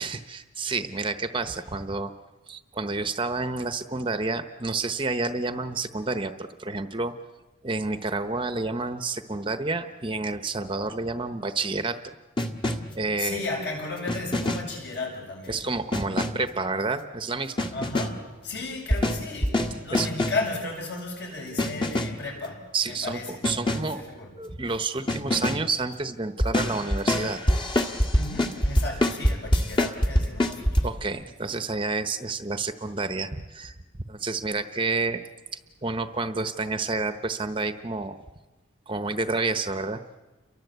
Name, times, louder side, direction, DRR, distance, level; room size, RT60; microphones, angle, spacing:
voice 1, 0.0-2.1 2.5-7.1 7.6-12.0 13.0-13.4 15.5-17.7 19.9-20.1 22.7-24.0 24.4-27.4 30.8-33.7 34.1-35.2 35.5-38.2 38.9-40.0, right 3 dB, 25° right, 9 dB, 1.0 m, -29 dB
sound 1, 12.4-13.0 14.1-14.8 15.9-16.5 17.6-18.3 18.9-20.5 21.6-22.3 23.4-24.0 25.1-25.7 26.4-30.8, left 1 dB, 25° left, 1.7 m, -25 dB
voice 2, 13.1-15.6 17.7-24.3 28.1-30.9, left 3 dB, 55° left, 1 dB, 7.8 m, -34 dB
30.0 x 23.5 x 8.2 m, 1.2 s
head